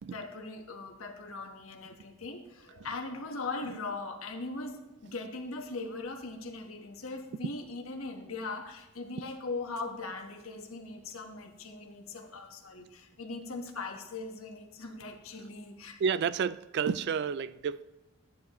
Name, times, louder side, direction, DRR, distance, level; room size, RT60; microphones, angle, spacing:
voice 1, 0.1-16.0, left 3 dB, 80° left, 1.2 m, -40 dB
voice 2, 16.0-17.8, right 6 dB, 55° right, 0.3 m, -30 dB
13.5 x 9.4 x 3.1 m
head